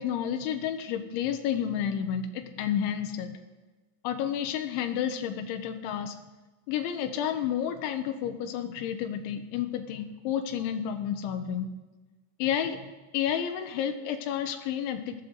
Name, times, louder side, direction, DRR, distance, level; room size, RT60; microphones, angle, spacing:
voice 1, 0.0-3.4 4.0-6.2 6.7-11.7 12.4-15.2, left 9 dB, 80° left, 7 dB, 3.3 m, -31 dB
20.5 x 14.0 x 4.0 m, 1.2 s
omnidirectional pair, 5.5 m